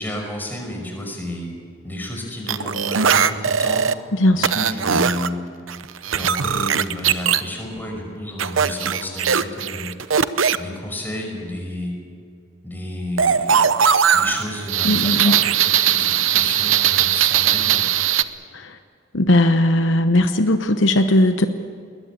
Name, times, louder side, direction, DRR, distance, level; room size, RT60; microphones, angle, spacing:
voice 1, 0.0-1.5 1.8-3.9 4.3-5.4 6.1-9.9 10.6-12.0 12.6-13.7 14.1-17.9, left 1 dB, 10° left, 1 dB, 5.5 m, -31 dB
sound 1, 2.5-3.9 4.4-5.3 5.7-7.4 8.4-10.6 13.2-18.2, right 8 dB, 85° right, 0.8 m, -19 dB
voice 2, 4.2-4.6 14.8-15.3 19.1-21.5, left 1 dB, 70° left, 8 dB, 1.0 m, -17 dB
21.0 x 20.5 x 8.4 m, 2.3 s
head